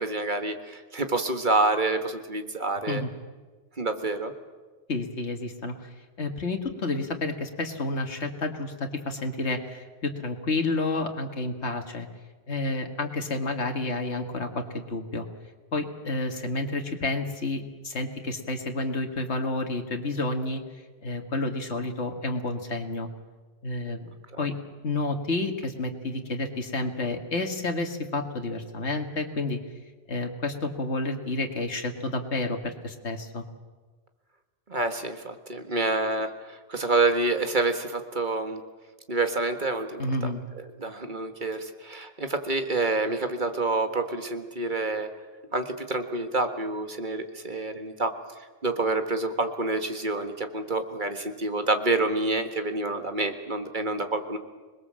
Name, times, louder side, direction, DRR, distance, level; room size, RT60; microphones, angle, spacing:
voice 1, 0.0-3.0 3.8-4.3 24.3-24.5 34.7-38.6 39.1-40.3 40.8-45.1 45.5-48.1 48.6-54.4, right 2 dB, 45° right, 7 dB, 1.8 m, -28 dB
voice 2, 4.9-5.9 6.2-12.1 12.5-15.3 15.7-20.6 21.0-23.1 23.6-24.1 24.4-24.5 24.8-29.6 30.1-33.4 40.0-40.4, left 2 dB, 80° left, 4 dB, 2.2 m, -30 dB
26.5 x 20.5 x 7.6 m, 1.3 s
omnidirectional pair, 1.1 m